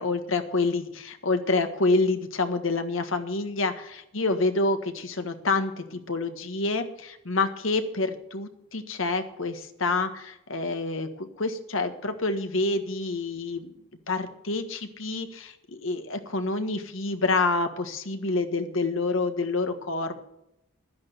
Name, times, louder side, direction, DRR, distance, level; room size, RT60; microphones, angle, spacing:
voice 1, 0.0-3.7 4.1-13.7 14.1-15.5 15.8-20.2, left 3 dB, 75° left, 7 dB, 1.5 m, -27 dB
11.5 x 10.5 x 6.7 m, 0.82 s
head